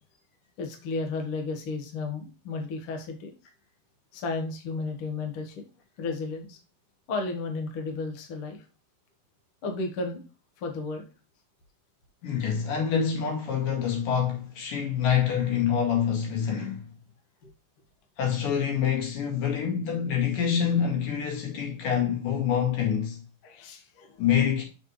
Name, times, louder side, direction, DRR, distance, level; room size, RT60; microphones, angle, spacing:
voice 1, 0.6-3.3 4.1-5.6 6.0-6.6 7.1-8.6 9.6-10.2 10.6-11.1 23.4-24.2, left 3 dB, 55° left, 1.6 m, -33 dB
voice 2, 12.2-16.9 18.2-23.2 24.2-24.6, left 8 dB, 70° left, 3.6 m, -26 dB
6.6 x 6.5 x 3.1 m
omnidirectional pair, 4.1 m